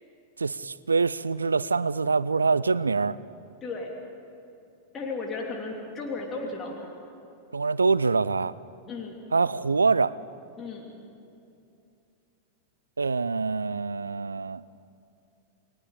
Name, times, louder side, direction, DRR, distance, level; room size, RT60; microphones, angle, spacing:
voice 1, 0.4-3.2 7.5-8.5 9.3-10.2 13.0-14.6, right 4 dB, 75° right, 19 dB, 0.4 m, -25 dB
voice 2, 4.9-6.9 8.9-9.2 10.6-10.9, left 3 dB, 25° left, -1 dB, 3.3 m, -34 dB
29.5 x 20.0 x 5.1 m, 2.6 s
figure-of-eight pair, 90°, 0 cm